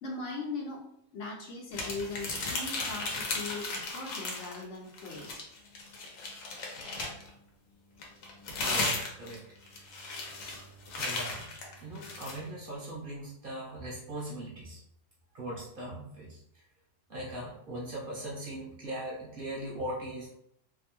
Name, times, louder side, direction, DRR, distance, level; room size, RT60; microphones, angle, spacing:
voice 1, 0.0-0.8 1.1-5.4, left 3 dB, 70° left, 0 dB, 0.9 m, -39 dB
sound 1, 1.7-4.6 4.9-7.3 8.0-12.4, left 3 dB, 85° left, 1.1 m, -35 dB
voice 2, 8.6-9.4 9.8-9.9 10.9-11.4 11.8-14.8 15.3-16.4 17.1-20.3, right 1 dB, 55° right, -4 dB, 0.7 m, -39 dB
2.6 x 2.1 x 2.9 m, 0.76 s
omnidirectional pair, 1.4 m